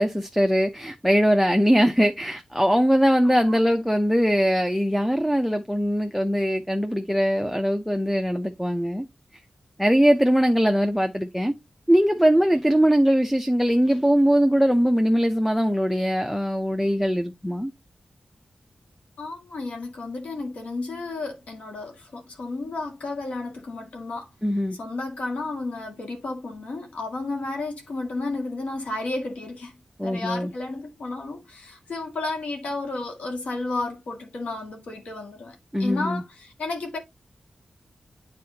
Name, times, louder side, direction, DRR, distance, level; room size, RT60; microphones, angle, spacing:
voice 1, 0.0-9.1 9.8-11.5 11.9-17.7 24.4-24.8 30.0-30.5 35.7-36.2, equal, ahead, 0.5 m, -21 dB
voice 2, 3.2-3.6 19.2-24.3 24.8-37.0, left 2 dB, 90° left, 1.9 m, -32 dB
9.5 x 4.2 x 2.7 m
wide cardioid pair, 125°, 2 cm